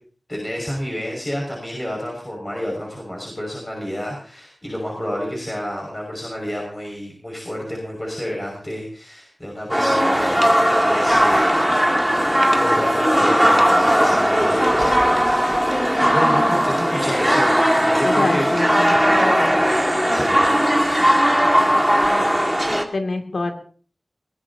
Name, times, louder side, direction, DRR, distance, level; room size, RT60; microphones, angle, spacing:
voice 1, 0.3-11.8 12.1-17.5 17.8-18.5 20.1-20.4, equal, 20° left, -1 dB, 6.0 m, -29 dB
sound 1, 9.7-22.8, equal, 5° right, 2.0 m, -18 dB
voice 2, 18.0-19.7 22.9-23.5, left 3 dB, 85° left, 4 dB, 2.6 m, -26 dB
22.0 x 18.0 x 2.8 m, 0.43 s
wide cardioid pair, 85°, 0 cm